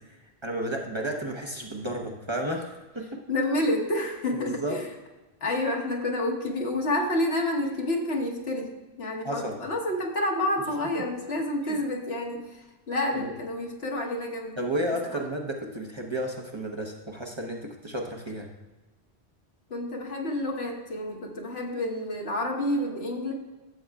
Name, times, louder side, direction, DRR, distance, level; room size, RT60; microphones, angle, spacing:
voice 1, 0.4-3.2 4.3-4.8 9.2-9.6 11.6-11.8 13.1-13.3 14.6-18.5, right 1 dB, 30° right, 0 dB, 0.8 m, -32 dB
voice 2, 3.3-4.9 5.4-8.7 9.0-14.7 15.1-15.2 19.7-23.3, left 1 dB, 75° left, 0 dB, 1.5 m, -29 dB
12.5 x 7.7 x 2.3 m, 1.2 s
omnidirectional pair, 1.1 m